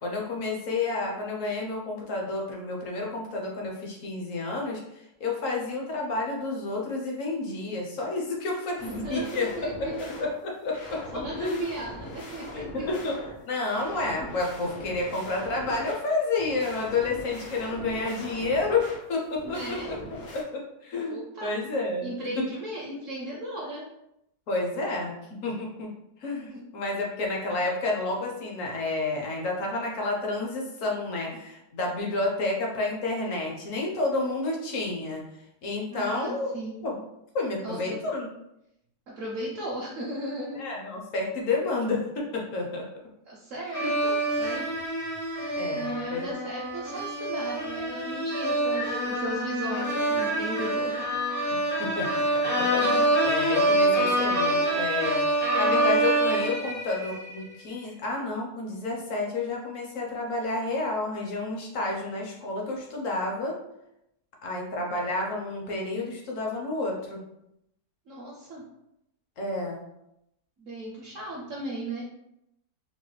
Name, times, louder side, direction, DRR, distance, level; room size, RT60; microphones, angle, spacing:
voice 1, 0.0-4.8 5.2-9.5 9.8-9.9 10.2-11.6 12.7-13.2 13.5-19.8 20.3-22.1 22.4-22.5 24.5-25.1 25.4-25.9 26.2-35.2 35.6-36.6 36.8-36.9 37.3-38.3 40.6-42.9 43.8-43.9 45.6-46.2 51.5-52.2 52.6-63.6 64.4-67.2 69.4-69.8, left 3 dB, 60° left, -1 dB, 0.9 m, -30 dB
sound 1, 8.8-20.4, left 1 dB, 80° left, 1.5 m, -41 dB
voice 2, 8.9-10.1 10.8-12.9 13.8-14.3 19.4-20.0 21.1-21.5 22.0-23.9 26.5-26.6 35.9-36.9 37.6-38.0 39.2-40.6 43.3-44.7 45.7-51.2 68.1-68.6 70.6-72.0, right 1 dB, 70° right, -3 dB, 0.8 m, -36 dB
sound 2, 43.7-57.4, right 1 dB, 20° left, 0.5 m, -26 dB
4.0 x 2.1 x 3.1 m, 0.83 s
omnidirectional pair, 1.8 m